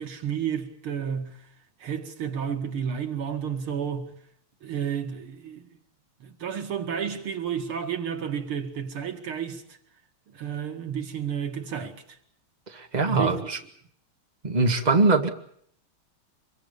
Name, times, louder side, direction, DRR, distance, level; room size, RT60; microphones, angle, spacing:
voice 1, 0.0-1.4 1.8-4.1 4.6-5.7 6.2-9.6 10.3-12.0 13.1-13.5, right 7 dB, 90° right, 3.0 m, -31 dB
voice 2, 12.7-13.6 14.4-15.3, right 3 dB, 20° right, 2.0 m, -22 dB
25.0 x 23.5 x 6.9 m
omnidirectional pair, 2.3 m